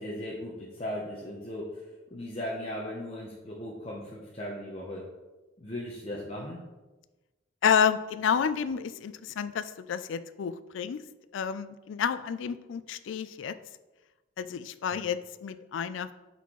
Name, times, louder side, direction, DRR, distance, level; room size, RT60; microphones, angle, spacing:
voice 1, 0.0-1.8 2.1-5.1 5.6-6.6, left 1 dB, 30° left, -4 dB, 0.7 m, -37 dB
voice 2, 7.6-11.0 11.3-13.5 14.4-16.1, left 7 dB, 70° left, 13 dB, 0.3 m, -29 dB
8.1 x 4.2 x 3.0 m, 1.1 s
head